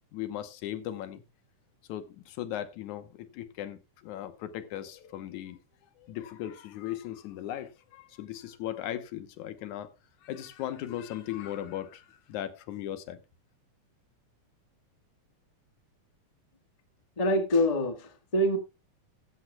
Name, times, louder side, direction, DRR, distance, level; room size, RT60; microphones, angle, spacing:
voice 1, 0.1-1.2 1.9-5.6 6.0-9.9 10.2-13.2, left 12 dB, 75° left, 2.4 m, -38 dB
voice 2, 17.2-18.6, left 1 dB, 50° left, 0.4 m, -25 dB
14.5 x 12.5 x 2.3 m
omnidirectional pair, 3.6 m